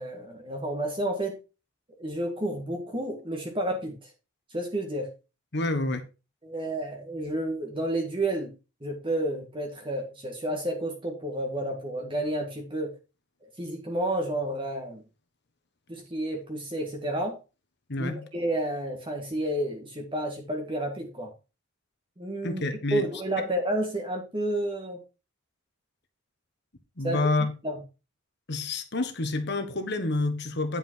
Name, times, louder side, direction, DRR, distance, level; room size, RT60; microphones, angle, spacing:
voice 1, 0.0-1.4 2.0-4.0 4.5-5.1 6.4-8.5 8.8-12.9 13.4-15.0 15.9-17.4 18.0-21.3 22.2-22.6 22.9-25.0 27.0-27.2 27.6-27.8, right 1 dB, 25° right, 1.8 m, -30 dB
voice 2, 5.5-6.0 17.9-18.3 22.4-23.1 23.4-23.5 27.0-27.5 28.5-30.8, left 2 dB, 55° left, 1.4 m, -28 dB
10.0 x 5.5 x 4.6 m
head